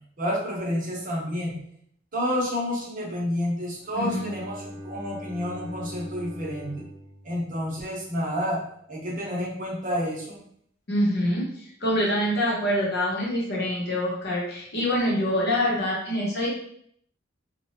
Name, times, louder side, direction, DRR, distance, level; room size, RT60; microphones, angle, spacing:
voice 1, 0.2-1.6 2.1-6.8 7.2-8.6 8.9-10.4, equal, 45° right, -3 dB, 0.8 m, -29 dB
Bowed string instrument, 3.8-7.9, left 1 dB, 80° right, 0.6 m, -41 dB
voice 2, 3.9-4.3 10.9-11.5 11.8-16.5, equal, 60° left, -3 dB, 0.9 m, -25 dB
2.9 x 2.2 x 2.7 m, 0.66 s
head